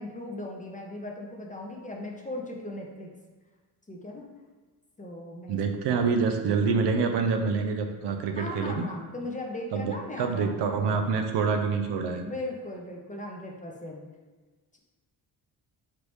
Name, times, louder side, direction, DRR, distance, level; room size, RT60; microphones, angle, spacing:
voice 1, 0.0-3.1 3.9-4.3 5.0-5.6 5.9-6.3 8.4-10.7 12.2-14.0, left 1 dB, 15° left, 0 dB, 0.8 m, -38 dB
voice 2, 5.5-8.8 9.7-9.8 10.2-12.3, right 5 dB, 70° right, 5 dB, 0.6 m, -26 dB
3.9 x 3.4 x 3.1 m, 1.3 s
supercardioid pair, 55°, 44 cm